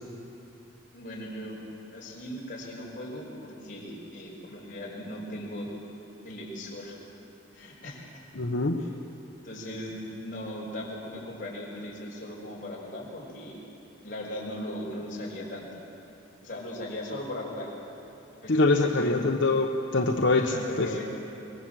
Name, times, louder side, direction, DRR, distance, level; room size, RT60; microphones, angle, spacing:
voice 1, 0.9-1.6 1.9-5.7 6.2-7.0 7.5-8.3 8.8-8.9 9.4-13.6 14.0-15.7 16.4-17.7 18.4-19.1 20.5-21.0, left 1 dB, 45° left, -4 dB, 5.6 m, -38 dB
voice 2, 8.4-8.8 18.5-20.9, left 2 dB, 70° left, 2 dB, 1.1 m, -24 dB
24.5 x 21.0 x 7.6 m, 2.8 s
head